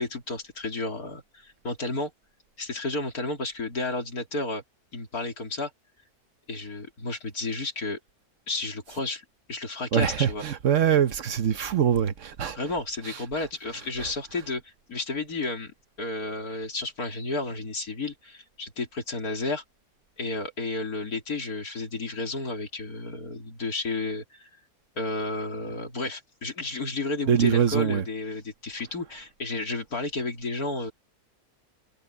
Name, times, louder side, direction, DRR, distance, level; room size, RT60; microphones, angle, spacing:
voice 1, 0.0-2.1 2.6-4.6 4.9-5.7 6.5-8.0 8.5-9.2 9.5-10.4 12.5-19.6 20.2-24.5 25.0-30.9, left 2 dB, 65° left, 3.9 m, -32 dB
voice 2, 9.9-12.6 13.0-13.5 14.0-14.1 27.3-28.0, right 8 dB, 55° right, 1.2 m, -24 dB
omnidirectional pair, 1.7 m